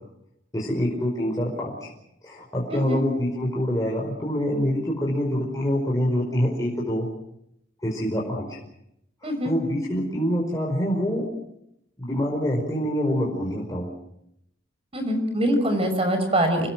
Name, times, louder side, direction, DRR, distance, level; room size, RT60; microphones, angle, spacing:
voice 1, 0.5-1.9 2.2-7.1 7.8-8.6 9.2-11.3 12.0-13.9, equal, 20° left, -2 dB, 5.0 m, -26 dB
voice 2, 2.7-3.1 9.2-9.5 14.9-16.7, equal, 30° right, 7 dB, 5.7 m, -23 dB
28.5 x 20.5 x 7.6 m, 0.78 s
head